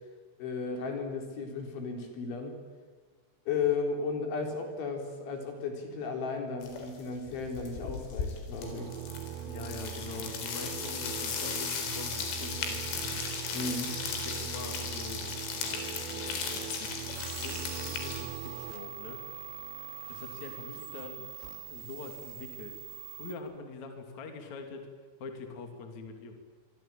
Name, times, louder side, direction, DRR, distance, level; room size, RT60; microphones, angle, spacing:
voice 1, 0.4-2.6 3.5-8.9 13.5-14.0, left 4 dB, 70° left, 4 dB, 6.3 m, -34 dB
sound 1, 6.6-7.0 7.3-18.2, left 5 dB, 85° left, 6.6 m, -36 dB
sound 2, 8.6-18.7, right 11 dB, 85° right, 2.0 m, -41 dB
voice 2, 9.4-13.2 14.2-17.0 17.4-19.2 20.1-21.2 21.7-22.7 23.2-24.9 25.2-26.3, left 4 dB, 40° left, 5 dB, 3.5 m, -44 dB
sound 3, 17.2-23.4, right 10 dB, 65° right, 4.9 m, -43 dB
26.5 x 24.0 x 9.0 m, 1.4 s
omnidirectional pair, 5.7 m